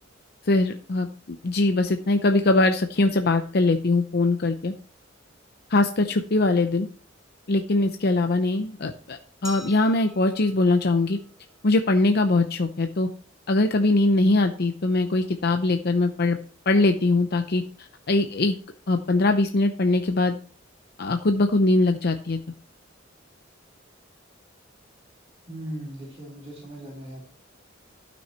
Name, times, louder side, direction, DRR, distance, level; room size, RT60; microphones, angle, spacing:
voice 1, 0.4-4.7 5.7-6.9 7.5-11.2 11.6-13.1 13.5-16.4 16.7-18.6 18.9-20.3 21.0-22.4, left 2 dB, 55° left, 6 dB, 0.7 m, -22 dB
Glass, 9.4-12.2, right 3 dB, ahead, 1.4 m, -46 dB
voice 2, 25.5-27.3, right 1 dB, 30° right, -5 dB, 3.6 m, -38 dB
12.0 x 6.2 x 4.3 m, 0.42 s
head